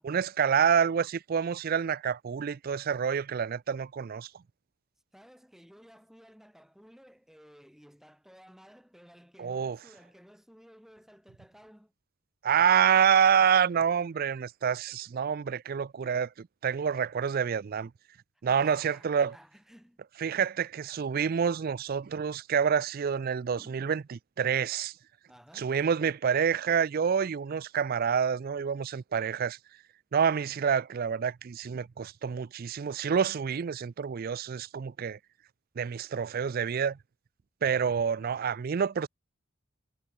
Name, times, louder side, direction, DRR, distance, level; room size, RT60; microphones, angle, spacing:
voice 1, 0.0-4.3 9.4-9.8 12.4-17.9 18.4-19.3 20.2-24.9 25.6-29.6 30.1-35.2 35.8-37.0 37.6-39.1, right 7 dB, 45° right, 0.3 m, -27 dB
voice 2, 5.1-11.9 18.5-20.0 23.6-24.0 25.3-25.7, equal, ahead, 3.0 m, -55 dB
head